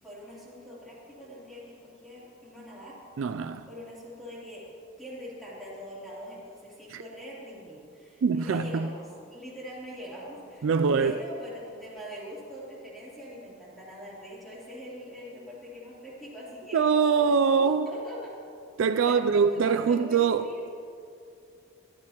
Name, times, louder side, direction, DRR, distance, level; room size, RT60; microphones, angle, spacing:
voice 1, 0.0-3.0 3.7-4.6 5.0-10.7 11.0-18.3 19.1-20.7, equal, ahead, 3.3 m, -43 dB
voice 2, 3.2-3.7 6.9-7.0 8.2-8.9 10.6-11.2 16.7-17.9 18.8-20.5, right 5 dB, 70° right, 0.3 m, -23 dB
22.5 x 10.5 x 3.0 m
head